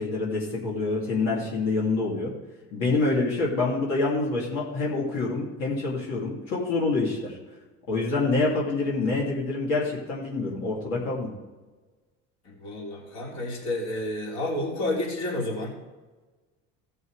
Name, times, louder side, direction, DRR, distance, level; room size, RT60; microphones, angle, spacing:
voice 1, 0.0-2.3 2.7-7.4 7.9-11.3, left 3 dB, 90° left, -5 dB, 2.9 m, -26 dB
voice 2, 12.4-15.8, left 1 dB, 65° left, -2 dB, 3.3 m, -30 dB
16.0 x 5.5 x 4.8 m, 1.2 s
cardioid pair, 115°, 29 cm